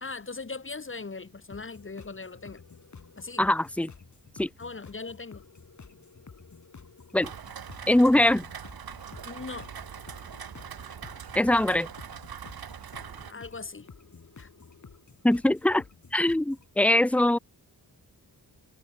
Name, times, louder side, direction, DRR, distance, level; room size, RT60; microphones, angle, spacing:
voice 1, 0.0-2.6 3.2-3.4 4.6-5.4 9.2-9.7 13.3-13.9 14.4-14.5, left 4 dB, 30° left, 1.3 m, -39 dB
sound 1, 1.5-16.7, left 5 dB, 45° left, 3.2 m, -51 dB
voice 2, 3.4-3.9 4.4-4.5 7.1-7.3 7.9-8.5 11.3-11.9 15.2-15.8 16.1-17.4, left 1 dB, 5° left, 0.7 m, -22 dB
Rain, 7.2-13.3, right 8 dB, 65° right, 1.4 m, -42 dB
wide cardioid pair, 85°, 39 cm